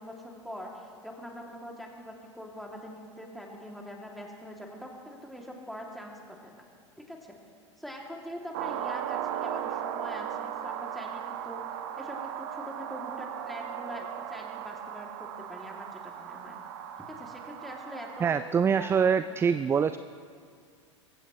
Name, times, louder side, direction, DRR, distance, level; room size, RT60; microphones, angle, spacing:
voice 1, 0.0-6.6 7.1-7.3 7.8-11.6 12.0-16.6 17.1-18.4 18.7-19.2, equal, ahead, -1 dB, 2.6 m, -43 dB
sound 1, 8.5-18.3, right 10 dB, 55° right, 1.0 m, -37 dB
voice 2, 18.2-20.0, right 6 dB, 15° right, 13 dB, 0.3 m, -24 dB
22.5 x 16.0 x 3.1 m, 2.1 s
figure-of-eight pair, 85°, 16 cm